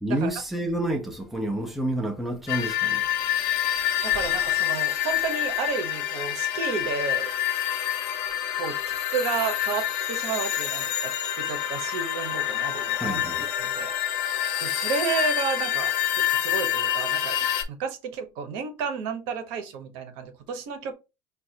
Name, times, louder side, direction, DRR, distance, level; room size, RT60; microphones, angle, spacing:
voice 1, 0.0-3.1 13.0-13.5, right 1 dB, ahead, 0.6 m, -29 dB
sound 1, 2.5-17.6, left 11 dB, 85° left, 0.7 m, -27 dB
voice 2, 4.0-7.3 8.6-13.9 14.6-20.9, right 6 dB, 70° right, 0.8 m, -32 dB
5.2 x 2.3 x 2.7 m
cardioid pair, 160°, 10 cm